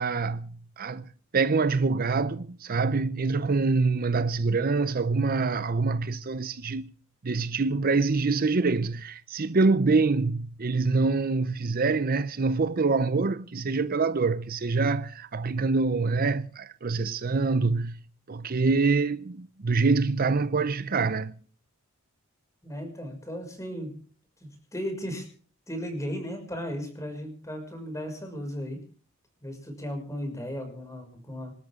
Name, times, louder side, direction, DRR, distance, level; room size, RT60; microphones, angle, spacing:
voice 1, 0.0-6.9 7.2-18.0 18.3-21.4, right 4 dB, 45° right, 0.6 m, -25 dB
voice 2, 22.6-24.0 24.4-25.3 25.7-28.8 29.4-31.5, equal, 15° left, 6.1 m, -35 dB
27.0 x 13.5 x 3.7 m
head